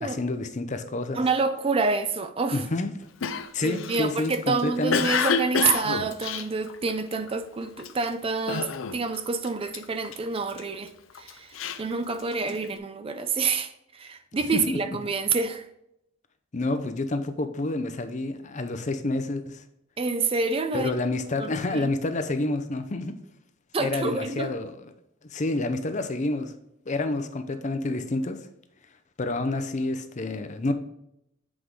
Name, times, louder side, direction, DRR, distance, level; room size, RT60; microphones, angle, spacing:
voice 1, 0.0-1.2 2.5-2.9 3.5-5.0 14.5-15.0 16.5-19.6 20.7-23.2 23.8-24.8 25.3-26.5 26.9-28.5 29.2-30.7, left 2 dB, 35° left, 0.6 m, -28 dB
voice 2, 1.1-2.6 3.6-10.9 11.2-15.7 20.0-20.9 21.4-21.9 23.7-24.5, right 4 dB, 30° right, 0.4 m, -28 dB
Cough, 3.2-7.3 7.8-8.1 8.5-9.2 9.4-10.6 11.1-12.7, left 5 dB, 80° left, 0.5 m, -29 dB
8.0 x 4.8 x 3.7 m
head